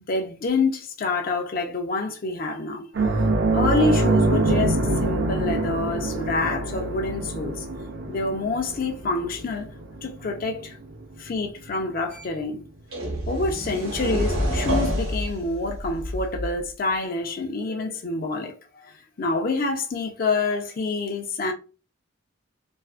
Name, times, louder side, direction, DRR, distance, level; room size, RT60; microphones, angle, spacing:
voice 1, 0.1-2.9 3.5-7.7 8.1-9.7 10.0-10.8 11.2-12.6 13.3-18.5 18.8-18.9 19.2-21.5, left 3 dB, 45° left, 0.4 m, -27 dB
sound 1, 2.9-11.9 12.2-12.4 14.5-14.6, right 2 dB, 60° right, 0.5 m, -25 dB
sound 2, 12.1-12.2 12.9-16.7, equal, 90° right, 0.9 m, -28 dB
2.5 x 2.2 x 2.4 m
head